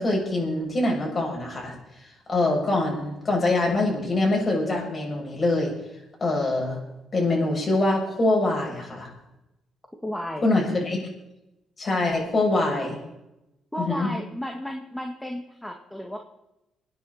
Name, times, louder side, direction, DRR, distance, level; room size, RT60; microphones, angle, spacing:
voice 1, 0.0-1.8 2.0-5.7 6.2-6.8 7.1-9.1 10.4-11.0 11.8-13.0 13.8-14.1, left 2 dB, 35° left, -1 dB, 7.5 m, -24 dB
voice 2, 10.0-10.4 13.7-16.2, equal, 5° left, 3 dB, 1.9 m, -33 dB
26.5 x 10.0 x 4.3 m, 0.92 s
cardioid pair, 90°, 0 cm